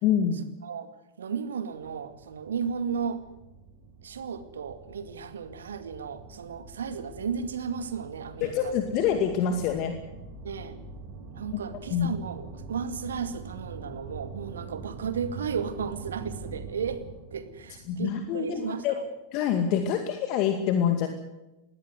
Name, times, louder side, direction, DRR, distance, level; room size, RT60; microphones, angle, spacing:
voice 1, 0.0-0.5 8.4-10.0 11.9-12.1 17.9-19.0 19.3-21.1, left 8 dB, 40° left, 7 dB, 2.2 m, -26 dB
voice 2, 1.2-3.2 4.0-8.7 10.4-10.8 11.3-17.0 17.3-19.0, right 6 dB, 65° right, 11 dB, 2.2 m, -34 dB
sound 1, 1.8-18.8, right 4 dB, 40° right, 4.8 m, -44 dB
21.0 x 16.5 x 9.5 m, 0.97 s
figure-of-eight pair, 90°, 0 cm